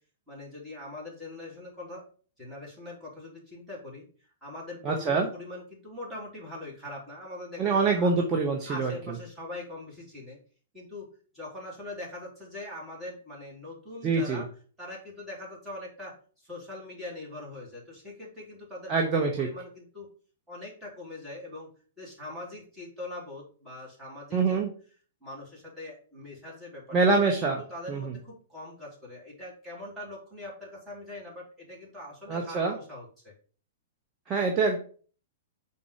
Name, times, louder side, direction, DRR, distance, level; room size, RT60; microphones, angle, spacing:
voice 1, 0.3-2.1 2.4-8.1 8.7-10.4 10.7-14.5 14.8-20.1 20.5-21.7 22.0-24.6 25.2-27.2 27.7-33.3, left 2 dB, 10° right, -5 dB, 3.5 m, -42 dB
voice 2, 4.8-5.3 7.6-8.9 14.0-14.4 18.9-19.5 24.3-24.7 26.9-27.6 27.9-28.1 32.3-32.7 34.3-34.8, right 4 dB, 25° right, 1 dB, 1.2 m, -25 dB
5.5 x 4.2 x 4.9 m, 0.43 s
figure-of-eight pair, 105°, 0 cm